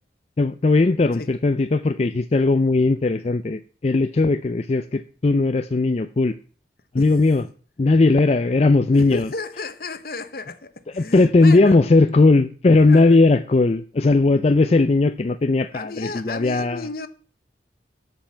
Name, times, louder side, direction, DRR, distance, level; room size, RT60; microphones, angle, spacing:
voice 1, 0.4-6.4 6.9-7.5 7.8-9.3 10.9-16.8, left 3 dB, 35° left, 0.4 m, -18 dB
voice 2, 8.9-11.9 12.8-13.2 15.7-17.1, left 3 dB, 55° left, 0.9 m, -33 dB
11.5 x 5.4 x 7.4 m
head